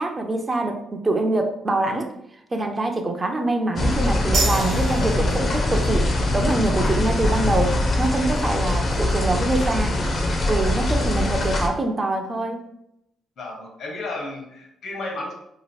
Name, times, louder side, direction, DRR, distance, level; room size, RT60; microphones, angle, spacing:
voice 1, 0.0-2.1 2.5-10.0 10.5-12.6, right 2 dB, 25° right, 4 dB, 0.4 m, -24 dB
sound 1, 3.8-11.7, left 2 dB, 45° left, 0.5 m, -22 dB
sound 2, 4.3-11.4, right 3 dB, 65° right, 0.8 m, -35 dB
voice 2, 13.4-15.3, left 2 dB, 65° left, 0 dB, 0.9 m, -33 dB
2.8 x 2.4 x 3.0 m, 0.80 s
cardioid pair, 90°, 0 cm